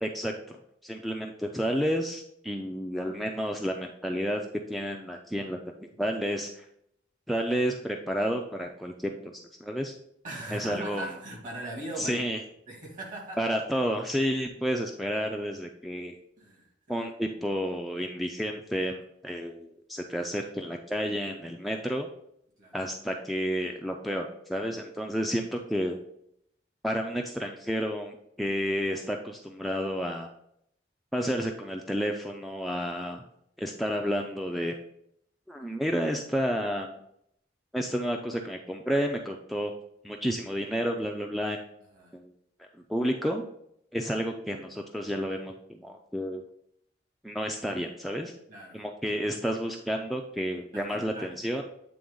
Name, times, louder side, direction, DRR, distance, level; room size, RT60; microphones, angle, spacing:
voice 1, 0.0-0.6 0.8-4.4 4.7-5.6 6.0-6.7 7.3-9.3 9.6-9.9 10.5-11.0 12.0-12.4 13.4-16.2 16.9-22.1 22.7-26.0 26.8-30.3 31.1-33.2 33.6-34.7 35.5-36.9 37.7-39.7 40.0-41.6 42.1-42.3 42.9-43.4 43.9-46.4 47.2-48.3 48.7-51.6, equal, ahead, 2 dB, 0.3 m, -31 dB
voice 2, 10.2-12.2 12.7-13.5 16.4-17.0 21.7-21.8 22.6-22.8 41.9-42.2 48.5-48.9 50.7-51.5, right 1 dB, 45° right, -1 dB, 2.2 m, -40 dB
8.6 x 3.4 x 3.8 m, 0.74 s
head